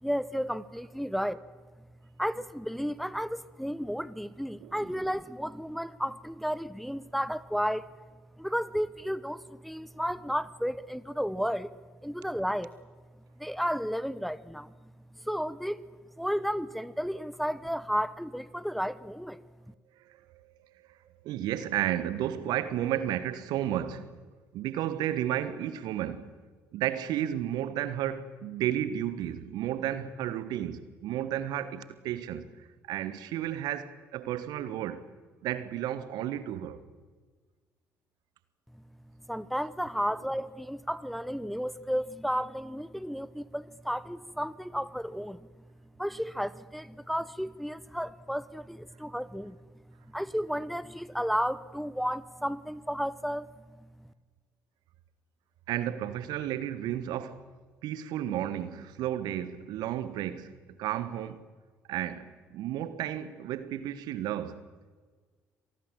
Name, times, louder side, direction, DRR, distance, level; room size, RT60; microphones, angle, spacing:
voice 1, 0.0-1.4 2.2-7.9 8.4-11.7 12.0-12.7 13.4-14.7 15.2-15.8 16.2-19.4 39.3-45.5 46.0-49.6 50.1-53.5, equal, ahead, 0.9 m, -33 dB
voice 2, 20.0-20.4 20.7-24.2 24.5-26.3 26.7-35.1 35.4-36.8 55.7-57.5 57.8-61.4 61.9-64.7, right 11 dB, 60° right, 1.4 m, -33 dB
26.5 x 19.0 x 7.6 m
figure-of-eight pair, 50°, 8 cm